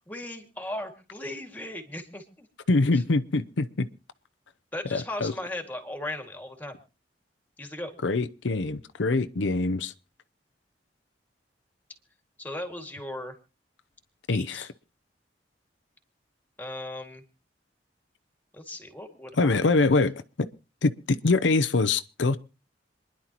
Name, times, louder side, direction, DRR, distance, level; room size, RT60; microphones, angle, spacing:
voice 1, 0.0-2.5 4.7-6.7 7.6-7.9 12.4-13.4 14.3-14.7 16.6-17.2 18.5-19.7, left 1 dB, 10° left, 2.1 m, -37 dB
voice 2, 2.7-3.9 4.9-5.3 8.0-9.9 14.3-14.7 19.3-20.5 20.8-22.4, left 3 dB, 90° left, 0.7 m, -24 dB
27.0 x 11.0 x 3.0 m
head